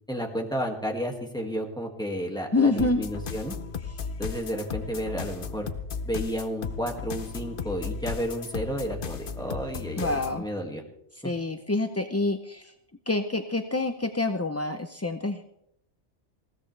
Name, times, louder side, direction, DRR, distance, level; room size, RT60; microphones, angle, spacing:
voice 1, 0.1-3.5 4.2-5.7 6.0-10.8, equal, 5° left, 1 dB, 2.0 m, -32 dB
voice 2, 2.5-3.0 10.0-10.4 11.2-12.7 13.1-15.5, left 2 dB, 20° left, 7 dB, 0.5 m, -27 dB
sound 1, 2.8-10.4, left 6 dB, 50° left, 1.0 m, -35 dB
20.0 x 16.0 x 3.3 m, 0.77 s
omnidirectional pair, 1.2 m